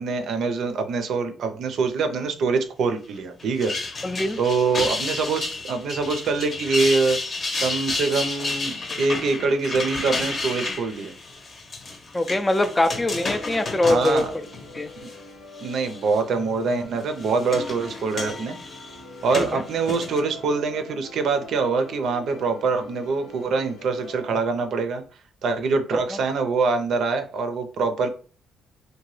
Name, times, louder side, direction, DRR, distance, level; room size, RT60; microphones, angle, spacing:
voice 1, 0.0-3.7 4.4-7.2 7.6-11.1 13.8-14.3 15.0-15.1 15.6-18.6 19.2-25.0 25.4-28.1, right 4 dB, 70° right, 7 dB, 0.5 m, -24 dB
sound 1, 3.4-15.2 15.6-16.2 17.0-20.2, left 3 dB, 40° left, 0.7 m, -31 dB
voice 2, 4.0-4.4 12.1-14.3 14.7-14.9 19.4-19.6, left 2 dB, 15° left, 10 dB, 0.3 m, -23 dB
sound 2, 12.6-24.4, left 2 dB, 90° left, 1.0 m, -43 dB
2.8 x 2.1 x 3.1 m, 0.38 s
cardioid pair, 90°, 0 cm